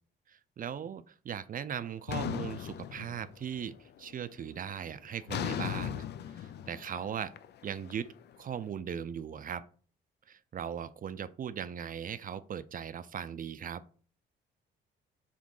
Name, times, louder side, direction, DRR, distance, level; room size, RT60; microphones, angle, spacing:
voice 1, 0.3-6.0 6.3-7.3 7.6-9.7 10.3-13.8, right 8 dB, 45° right, 14 dB, 0.5 m, -39 dB
sound 1, 2.1-3.6 4.0-4.4 5.3-8.4, left 10 dB, 60° left, 0.4 m, -38 dB
5.1 x 3.5 x 5.4 m, 0.43 s
cardioid pair, 90°, 20 cm